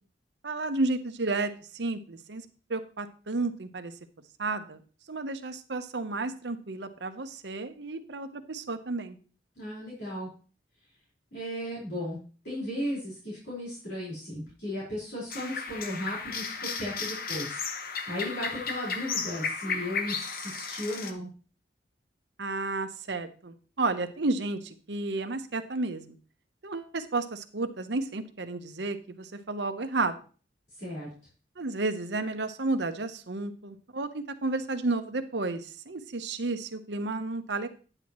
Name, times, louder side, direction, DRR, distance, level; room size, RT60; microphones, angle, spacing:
voice 1, 0.4-3.9 4.4-4.8 5.1-9.2 22.4-26.1 26.6-30.2 31.6-37.7, right 3 dB, 75° right, 8 dB, 0.9 m, -32 dB
voice 2, 9.6-10.3 11.3-12.2 12.4-17.7 18.1-21.3 30.7-31.1, equal, 70° left, -7 dB, 4.6 m, -35 dB
sound 1, 15.3-21.1, left 5 dB, 55° left, 0.9 m, -34 dB
9.9 x 8.9 x 3.1 m, 0.38 s
head